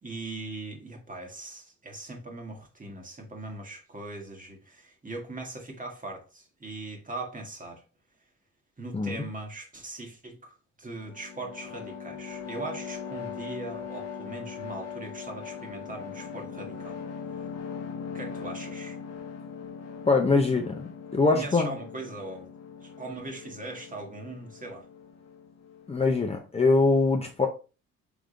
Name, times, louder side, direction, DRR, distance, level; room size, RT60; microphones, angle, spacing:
voice 1, 0.0-7.8 8.8-17.0 18.1-19.0 21.3-22.5 22.8-24.9, right 2 dB, 25° right, 1.5 m, -40 dB
sound 1, 10.9-26.4, left 6 dB, 55° left, 0.8 m, -40 dB
voice 2, 20.1-21.7 25.9-27.5, left 3 dB, 20° left, 0.8 m, -23 dB
3.5 x 3.5 x 3.8 m
cardioid pair, 90°, 30 cm